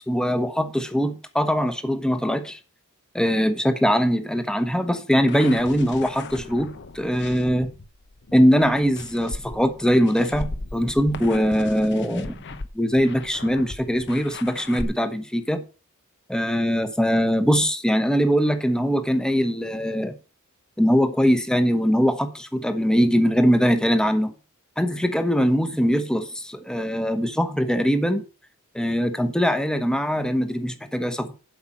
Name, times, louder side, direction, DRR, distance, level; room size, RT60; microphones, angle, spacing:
voice 1, 0.1-2.6 3.1-7.7 8.3-12.4 12.7-15.6 16.3-20.2 20.8-24.3 24.8-28.2 28.7-31.4, equal, 5° left, 1.0 m, -22 dB
sound 1, 5.3-14.8, left 3 dB, 55° left, 0.8 m, -38 dB
8.0 x 5.6 x 7.5 m
head